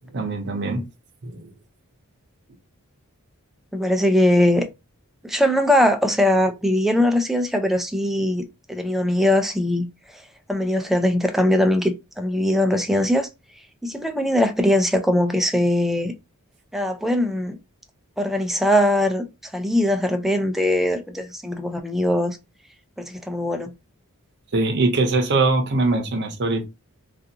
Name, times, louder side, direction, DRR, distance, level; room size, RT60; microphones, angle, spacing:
voice 1, 0.1-0.9 1.2-1.5 24.5-26.6, right 3 dB, 50° right, 0.7 m, -22 dB
voice 2, 3.7-4.7 5.2-9.9 10.5-13.3 13.8-16.1 16.7-17.6 18.2-22.4 23.0-23.7, left 1 dB, ahead, 0.3 m, -21 dB
2.5 x 2.4 x 2.7 m
head